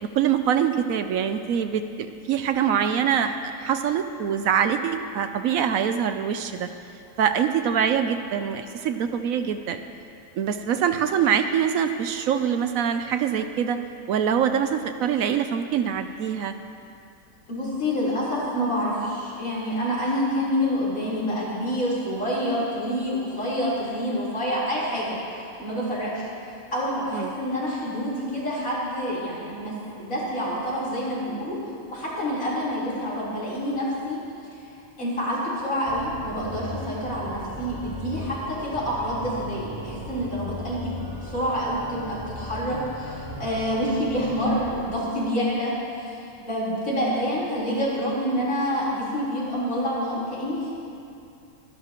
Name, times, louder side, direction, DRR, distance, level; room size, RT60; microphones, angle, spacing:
voice 1, 0.0-6.7 7.2-9.8 10.4-13.8 14.1-16.5 27.1-27.3 47.0-47.3, right 8 dB, 75° right, 8 dB, 1.0 m, -24 dB
voice 2, 17.5-26.3 26.7-31.6 31.9-34.2 35.0-45.7 46.0-50.7, equal, 60° left, -8 dB, 4.4 m, -27 dB
Organ, 35.8-45.1, left 1 dB, 15° right, 2.3 m, -37 dB
24.5 x 12.0 x 3.0 m, 2.6 s
omnidirectional pair, 1.6 m